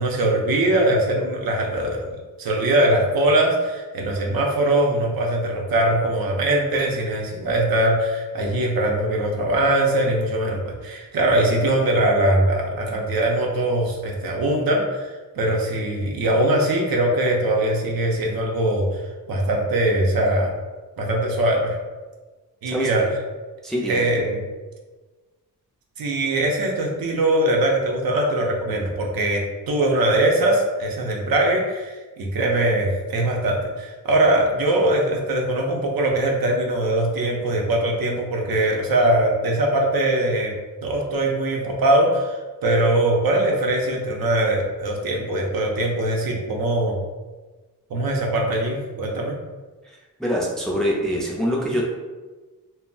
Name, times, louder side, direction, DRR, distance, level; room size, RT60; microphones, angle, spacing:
voice 1, 0.0-2.0 2.4-15.1 15.4-19.0 19.3-20.5 21.0-21.8 22.6-23.2 23.8-24.4 26.0-40.5 40.8-47.0 47.9-49.4, right 1 dB, 80° right, 0 dB, 0.6 m, -21 dB
voice 2, 23.6-24.0 50.2-51.9, equal, ahead, -3 dB, 0.3 m, -24 dB
2.2 x 2.0 x 3.8 m, 1.3 s
wide cardioid pair, 150°, 35 cm